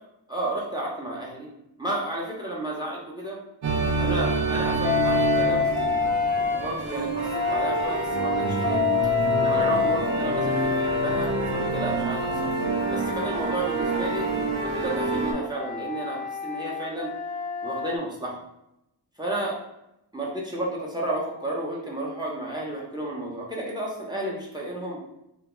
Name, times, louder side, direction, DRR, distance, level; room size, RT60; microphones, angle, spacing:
voice 1, 0.3-1.5 1.8-3.4 4.0-8.8 9.4-12.5 12.9-14.3 14.6-17.1 17.6-18.4 19.2-19.5 20.1-25.0, right 1 dB, 10° right, -3 dB, 0.7 m, -32 dB
sound 1, 3.6-15.3, right 3 dB, 75° right, 0.7 m, -27 dB
Wind instrument woodwind instrument, 4.8-6.6 7.3-12.1 12.7-18.0, left 6 dB, 20° left, 0.3 m, -28 dB
2.2 x 2.2 x 2.9 m, 0.86 s
cardioid pair, 45°, 47 cm